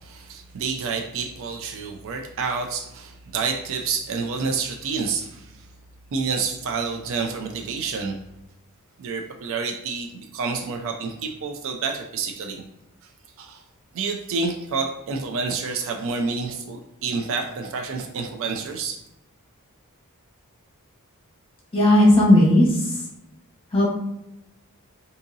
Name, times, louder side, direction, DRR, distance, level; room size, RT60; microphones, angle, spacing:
voice 1, 0.0-5.7 6.1-8.2 9.0-12.6 13.4-13.6 13.9-19.0, right 4 dB, 60° right, 3 dB, 0.4 m, -28 dB
voice 2, 21.7-22.7 23.7-23.9, left 1 dB, 25° left, -4 dB, 1.0 m, -15 dB
3.7 x 2.7 x 2.6 m, 0.89 s
head